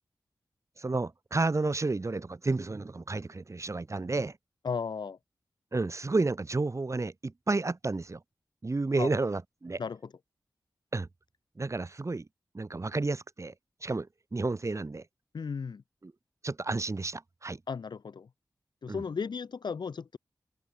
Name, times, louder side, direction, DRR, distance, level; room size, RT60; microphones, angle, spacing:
voice 1, 0.8-4.4 5.7-8.2 8.6-9.8 10.9-11.1 11.6-12.3 12.5-13.5 13.8-15.0 16.0-16.1 16.4-17.6 18.9-19.0, right 3 dB, 45° right, 3.8 m, -31 dB
voice 2, 4.6-5.2 9.0-9.1 9.8-10.0 15.3-15.8 17.7-18.3 18.8-20.2, left 5 dB, 80° left, 6.9 m, -35 dB
open air
cardioid pair, 55°, 7 cm